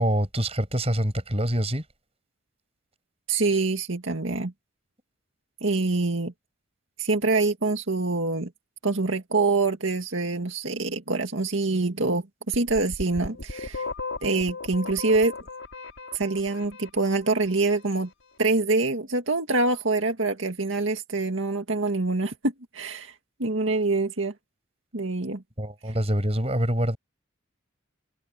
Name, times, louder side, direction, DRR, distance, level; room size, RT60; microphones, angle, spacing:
voice 1, 0.0-1.8 25.6-27.0, right 1 dB, 30° right, 6.7 m, -25 dB
voice 2, 3.3-4.5 5.6-6.3 7.0-8.5 8.8-13.9 14.2-15.3 16.1-18.1 18.4-23.1 23.4-24.3 24.9-25.4, right 3 dB, 75° right, 2.0 m, -25 dB
sound 1, 12.5-17.4, left 3 dB, 85° left, 5.7 m, -36 dB
head